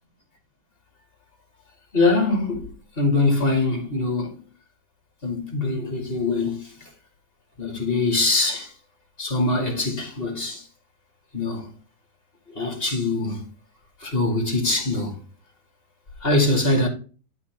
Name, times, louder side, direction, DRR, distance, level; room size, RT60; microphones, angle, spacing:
voice 1, 1.9-2.7 3.0-4.4 5.2-6.6 7.6-8.7 9.2-10.6 11.3-11.7 12.6-13.4 14.0-15.2 16.2-16.9, left 2 dB, 35° left, 2.6 m, -23 dB
12.0 x 4.2 x 3.5 m
omnidirectional pair, 1.8 m